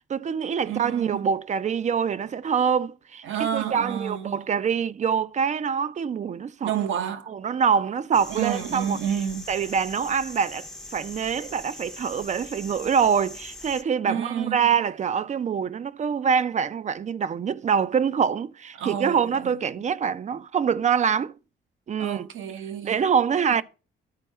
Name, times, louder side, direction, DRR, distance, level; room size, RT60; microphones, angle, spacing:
voice 1, 0.1-3.2 3.5-6.7 7.3-9.0 9.5-10.7 10.9-21.3 21.9-22.3 22.8-23.6, right 7 dB, 35° right, 0.5 m, -25 dB
voice 2, 0.7-1.3 3.2-4.5 6.6-7.3 8.3-9.5 14.0-14.7 18.8-19.6 22.0-23.0, right 9 dB, 80° right, 1.1 m, -30 dB
sound 1, 8.1-13.8, left 1 dB, 5° left, 0.7 m, -41 dB
11.5 x 4.5 x 5.4 m
cardioid pair, 90°, 20 cm